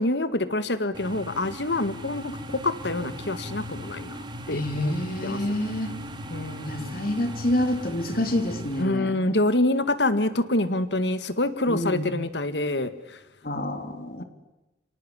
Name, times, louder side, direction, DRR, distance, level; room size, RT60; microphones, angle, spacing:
voice 1, 0.0-4.2 4.5-4.9 5.2-5.4 6.3-7.0 8.8-12.9 14.2-14.3, left 2 dB, 80° left, 12 dB, 1.9 m, -26 dB
sound 1, 0.9-8.8, equal, 25° right, 3.3 m, -38 dB
voice 2, 4.5-6.0 6.7-9.2 11.7-12.1 13.4-14.2, left 1 dB, 55° left, 7 dB, 3.7 m, -28 dB
25.5 x 18.5 x 9.9 m, 1.0 s
head